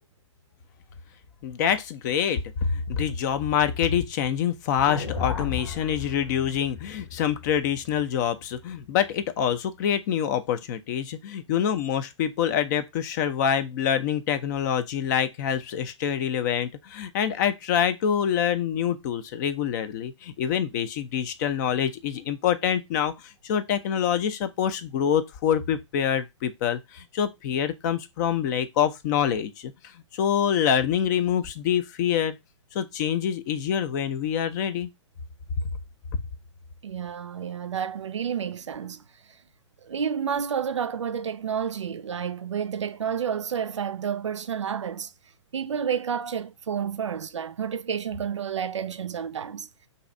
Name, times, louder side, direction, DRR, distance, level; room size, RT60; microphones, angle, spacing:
voice 1, 1.4-29.7 30.1-32.4 32.7-34.9 36.1-36.2, left 8 dB, 40° left, 0.4 m, -26 dB
sound 1, 4.8-9.1, left 7 dB, 70° left, 1.0 m, -35 dB
voice 2, 36.8-39.0 39.8-45.1 45.5-49.7, right 7 dB, 75° right, 0.4 m, -30 dB
2.7 x 2.3 x 4.0 m
figure-of-eight pair, 115°, 15 cm